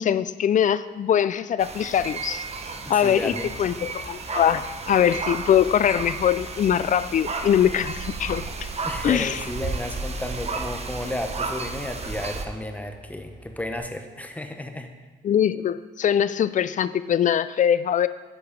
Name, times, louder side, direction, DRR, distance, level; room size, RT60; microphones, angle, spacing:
voice 1, 0.0-2.4 2.9-8.4 9.0-9.4 15.2-18.1, left 9 dB, 40° left, 15 dB, 0.4 m, -22 dB
sound 1, 1.6-12.4, right 4 dB, 30° right, 0.8 m, -33 dB
voice 2, 2.8-3.5 8.8-14.9, left 1 dB, 5° left, 6 dB, 0.8 m, -33 dB
sound 2, 3.5-13.8, right 2 dB, 25° left, 1.2 m, -44 dB
9.7 x 4.8 x 5.2 m, 1.3 s
cardioid pair, 90°, 20 cm